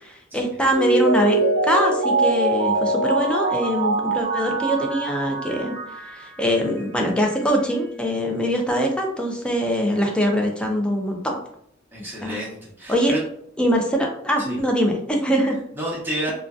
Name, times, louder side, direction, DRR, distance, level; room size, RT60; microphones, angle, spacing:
voice 1, 0.0-1.4 1.6-5.8 6.1-11.3 12.2-12.4 12.9-13.1 13.6-15.6, equal, 5° left, 1 dB, 0.4 m, -23 dB
Mallet percussion, 0.7-6.2 6.6-6.7, right 2 dB, 55° right, 0.7 m, -23 dB
voice 2, 11.9-13.2 14.4-14.6 15.7-16.3, right 1 dB, 10° right, -5 dB, 0.8 m, -30 dB
2.5 x 2.2 x 2.3 m, 0.68 s
head